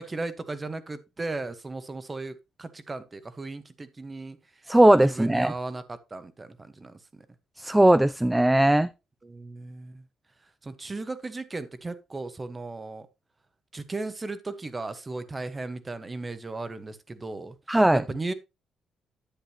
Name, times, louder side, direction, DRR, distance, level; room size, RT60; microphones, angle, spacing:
voice 1, 0.0-4.6 5.0-7.3 9.2-10.0 10.6-13.1 13.7-17.6 17.9-18.3, right 3 dB, 25° right, 1.2 m, -36 dB
voice 2, 4.7-5.5 7.6-8.9 17.7-18.0, right 1 dB, 10° right, 0.4 m, -19 dB
10.0 x 7.8 x 2.9 m
cardioid pair, 90°, 0 cm